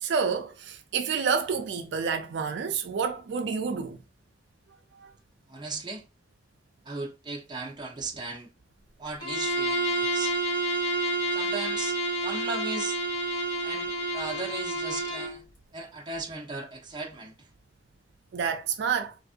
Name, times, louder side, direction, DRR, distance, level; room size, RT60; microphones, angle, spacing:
voice 1, 0.0-4.0 4.9-5.1 18.3-19.1, right 6 dB, 65° right, 0.4 m, -29 dB
voice 2, 5.5-6.0 6.8-8.5 9.0-10.4 11.3-13.0 13.6-15.4 15.7-17.5, right 3 dB, 25° right, 0.6 m, -37 dB
Bowed string instrument, 9.2-15.4, right 1 dB, 25° left, 1.3 m, -29 dB
3.4 x 2.4 x 2.4 m
head